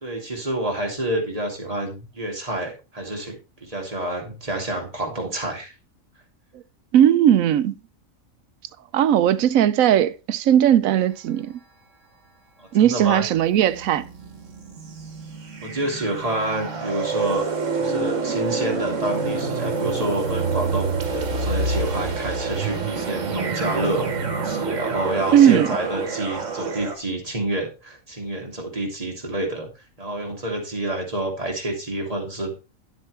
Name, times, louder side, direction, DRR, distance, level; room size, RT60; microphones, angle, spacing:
voice 1, 0.0-5.7 12.6-13.3 15.6-17.5 17.7-24.1 24.4-29.7 30.0-32.5, right 1 dB, 25° right, 2.4 m, -28 dB
voice 2, 6.9-7.7 8.9-11.5 12.7-14.1 25.3-25.7, right 10 dB, 85° right, 1.1 m, -17 dB
sound 1, 13.3-27.0, right 4 dB, 65° right, 1.7 m, -27 dB
10.5 x 7.7 x 3.3 m
omnidirectional pair, 1.4 m